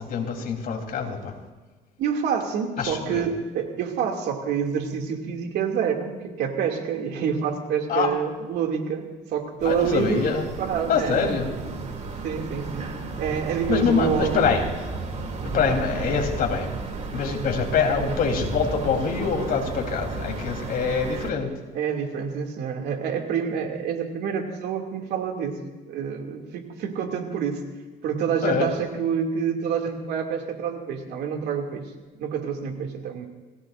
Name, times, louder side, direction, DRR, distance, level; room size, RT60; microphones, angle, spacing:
voice 1, 0.0-1.3 2.8-3.3 7.9-8.1 9.6-10.5 10.9-11.5 13.7-14.6 15.5-16.7 17.1-21.5 28.4-28.7, left 6 dB, 60° left, 1 dB, 3.8 m, -25 dB
voice 2, 2.0-10.2 10.6-11.3 12.2-12.9 13.2-14.5 21.7-25.6 25.9-27.6 28.0-31.9 32.2-33.3, right 7 dB, 75° right, 2 dB, 2.6 m, -27 dB
sound 1, 9.6-21.3, right 4 dB, 45° right, 2.9 m, -33 dB
27.5 x 18.0 x 2.6 m, 1.3 s
cardioid pair, 110°, 17 cm